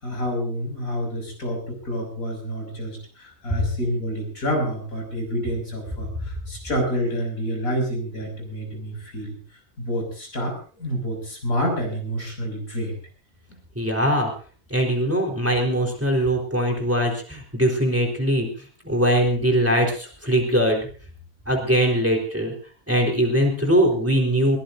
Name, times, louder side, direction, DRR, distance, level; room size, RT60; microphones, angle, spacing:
voice 1, 0.0-9.4 9.8-12.9, equal, 90° left, 2 dB, 6.7 m, -28 dB
voice 2, 13.8-14.3 14.7-18.5 18.8-20.8 21.5-22.5 22.9-24.6, equal, 10° right, 0 dB, 3.9 m, -21 dB
22.0 x 18.0 x 2.6 m, 0.40 s
omnidirectional pair, 1.4 m